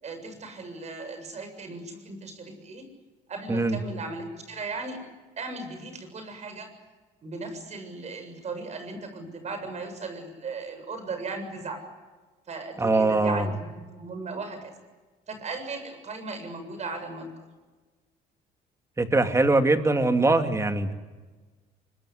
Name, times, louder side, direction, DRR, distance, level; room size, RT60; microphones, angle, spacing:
voice 1, 0.0-2.9 3.3-5.0 5.4-6.8 7.2-11.9 12.5-14.7 15.3-17.3, right 3 dB, 40° right, 8 dB, 7.3 m, -37 dB
voice 2, 12.8-13.5 19.0-20.9, right 2 dB, 15° right, 7 dB, 2.7 m, -22 dB
25.0 x 23.0 x 10.0 m, 1.3 s
cardioid pair, 110°, 17 cm